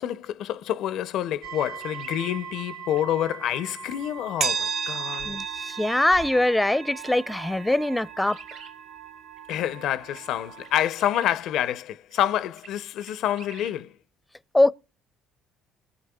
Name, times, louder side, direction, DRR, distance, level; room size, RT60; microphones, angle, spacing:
voice 1, 0.0-5.4 9.5-13.9, left 11 dB, 70° left, 0.5 m, -28 dB
sound 1, 1.4-10.8, right 7 dB, 60° right, 1.0 m, -35 dB
sound 2, 1.5-2.4 2.9-3.0 3.4-3.5 4.4-4.5 5.1-5.2 5.6-5.7 6.6-6.8 7.0-7.1 7.4-7.5 7.9-8.7 9.4-9.7 10.1-10.2 10.6-11.4 11.7-11.8 12.1-12.2 12.6-12.7 13.0-13.8, right 5 dB, 85° right, 3.7 m, -47 dB
voice 2, 5.2-8.4 14.5-14.7, left 1 dB, 10° left, 0.5 m, -22 dB
20.5 x 8.0 x 2.2 m
supercardioid pair, 75°, 0 cm